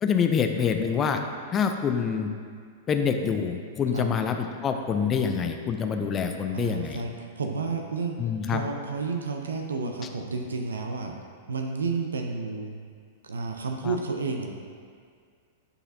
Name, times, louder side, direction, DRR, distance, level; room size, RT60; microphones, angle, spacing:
voice 1, 0.0-1.2 1.5-2.3 2.9-7.0 8.2-8.6 13.8-14.0, left 6 dB, 25° left, 5 dB, 0.5 m, -26 dB
voice 2, 6.5-8.2 8.5-11.1 11.5-12.7 13.2-14.5, right 4 dB, 75° right, 3 dB, 0.5 m, -31 dB
9.8 x 4.1 x 2.7 m, 2.1 s
figure-of-eight pair, 100°, 0 cm